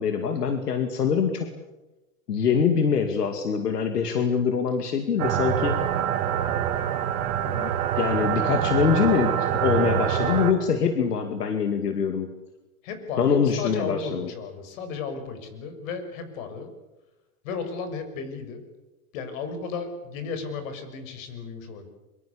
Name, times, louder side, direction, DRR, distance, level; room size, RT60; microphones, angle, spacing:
voice 1, 0.0-1.5 2.3-5.8 7.4-12.3 13.2-14.3, left 6 dB, 90° left, 7 dB, 2.5 m, -24 dB
sound 1, 5.2-10.5, right 10 dB, 65° right, 2.9 m, -25 dB
voice 2, 12.8-16.7 17.4-18.6 19.1-21.9, left 5 dB, 60° left, 9 dB, 6.6 m, -34 dB
24.5 x 23.5 x 8.5 m, 1.1 s
hypercardioid pair, 115°, 46 cm